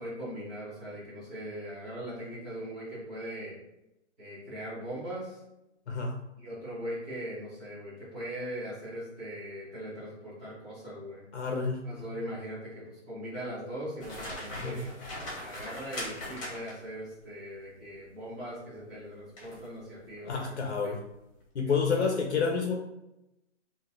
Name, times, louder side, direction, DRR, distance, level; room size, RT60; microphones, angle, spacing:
voice 1, 0.0-3.6 4.2-5.4 6.4-11.2 11.8-14.9 15.4-20.9 21.6-22.0, equal, 5° right, -12 dB, 0.7 m, -40 dB
voice 2, 11.3-12.1 14.5-14.8 20.2-21.0 21.5-22.8, left 5 dB, 65° left, 1 dB, 0.8 m, -29 dB
sound 1, 14.0-17.0 19.4-19.7 20.2-20.4, left 1 dB, 25° left, 1.4 m, -40 dB
4.9 x 2.8 x 2.6 m, 0.91 s
hypercardioid pair, 175°, 37 cm